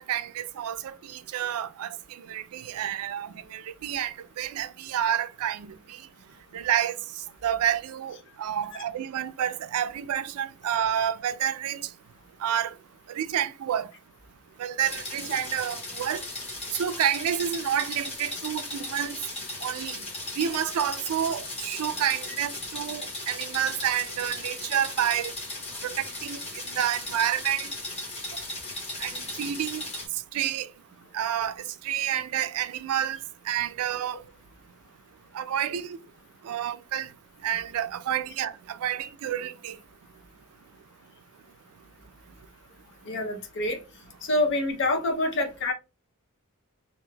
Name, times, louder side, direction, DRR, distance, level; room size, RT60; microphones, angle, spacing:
voice 1, 0.0-6.0 6.5-7.0 7.4-11.9 12.4-12.7 13.1-13.9 14.6-16.2 16.7-19.2 19.6-20.0 20.4-25.3 25.8-27.7 29.0-29.9 30.3-30.7 31.1-33.2 33.5-34.2 35.3-36.0 36.4-37.1 37.4-39.8, right 10 dB, 80° right, 0.3 m, -29 dB
sound 1, 14.8-30.1, left 2 dB, 30° left, 1.1 m, -37 dB
voice 2, 43.0-43.8 44.2-45.7, left 2 dB, 55° left, 0.6 m, -26 dB
2.5 x 2.2 x 3.1 m
head